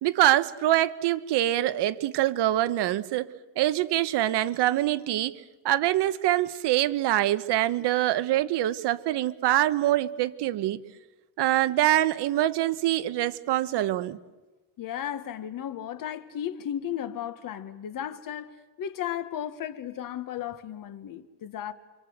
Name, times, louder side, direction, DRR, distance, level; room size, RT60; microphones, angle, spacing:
voice 1, 0.0-3.3 3.6-5.4 5.6-10.8 11.4-14.2, right 14 dB, 60° right, 1.2 m, -24 dB
voice 2, 14.8-21.7, left 10 dB, 45° left, 1.5 m, -35 dB
29.5 x 25.0 x 8.0 m
cardioid pair, 175°, 46 cm